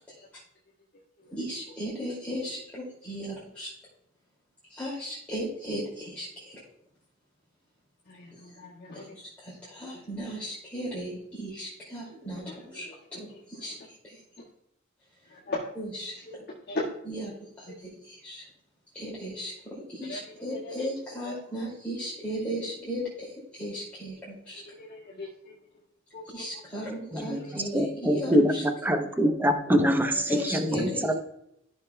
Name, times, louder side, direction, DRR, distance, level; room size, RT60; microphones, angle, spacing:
voice 1, 1.3-3.7 4.7-6.6 8.3-8.4 9.1-12.9 13.1-13.7 14.0-14.2 15.7-16.4 17.0-18.4 18.9-24.6 26.3-28.6 30.3-31.1, equal, 5° left, -9 dB, 2.4 m, -36 dB
voice 2, 8.1-9.2 15.3-15.7 16.3-16.4 16.7-16.8 20.1-20.7 21.3-21.4 24.7-25.3 26.1-26.2 27.2-27.5 30.1-30.4, left 2 dB, 50° left, -7 dB, 1.7 m, -37 dB
voice 3, 27.1-28.5 28.8-31.1, equal, 10° right, 5 dB, 0.7 m, -24 dB
13.0 x 6.2 x 2.2 m, 0.78 s
head